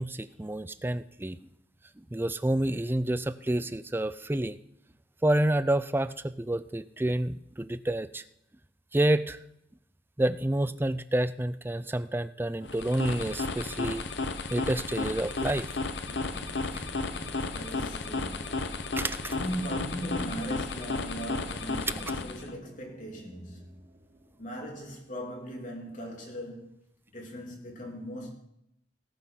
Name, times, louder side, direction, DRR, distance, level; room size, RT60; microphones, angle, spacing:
voice 1, 0.0-1.4 2.0-4.6 5.2-8.2 8.9-9.4 10.2-14.1 14.5-15.7 19.0-19.3, right 1 dB, 10° right, 0.4 m, -29 dB
sound 1, 12.6-22.5, left 3 dB, 65° left, 0.9 m, -33 dB
sound 2, 16.0-25.0, equal, 40° right, 2.2 m, -49 dB
voice 2, 17.4-18.8 19.3-23.9 24.4-26.7 27.1-28.3, equal, 45° left, 3.2 m, -39 dB
17.5 x 6.8 x 5.8 m
head